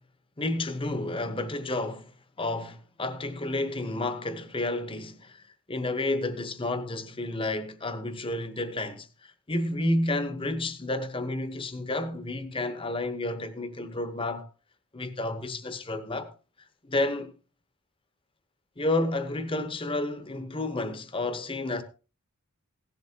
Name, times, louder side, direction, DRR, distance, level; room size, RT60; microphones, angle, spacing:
voice 1, 0.4-2.1 2.4-5.4 5.7-14.5 14.9-16.3 16.9-17.3 18.8-21.8, left 2 dB, 25° left, 0.9 m, -31 dB
16.5 x 11.0 x 2.8 m
head